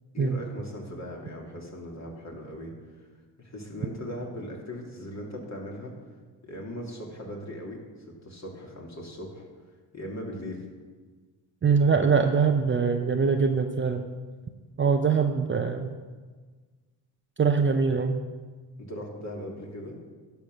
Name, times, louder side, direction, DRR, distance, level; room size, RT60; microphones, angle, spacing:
voice 1, 0.1-3.1 3.4-5.9 6.4-7.8 8.1-9.5 9.9-10.6 18.8-20.0, left 1 dB, 35° left, -1 dB, 2.9 m, -39 dB
voice 2, 11.6-14.1 14.8-16.0 17.4-18.2, right 5 dB, 25° right, 5 dB, 0.7 m, -23 dB
11.5 x 5.8 x 6.3 m, 1.4 s
supercardioid pair, 65°, 48 cm